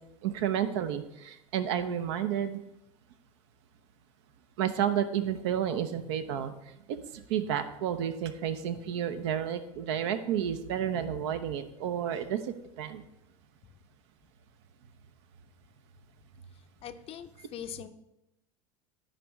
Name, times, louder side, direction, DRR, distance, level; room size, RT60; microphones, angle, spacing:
voice 1, 0.2-2.6 4.6-6.5 6.9-12.4 12.8-13.1, right 9 dB, 55° right, 11 dB, 0.7 m, -31 dB
voice 2, 16.8-17.9, left 9 dB, 35° left, 9 dB, 0.6 m, -41 dB
13.0 x 5.2 x 3.1 m, 0.89 s
figure-of-eight pair, 70°, 17 cm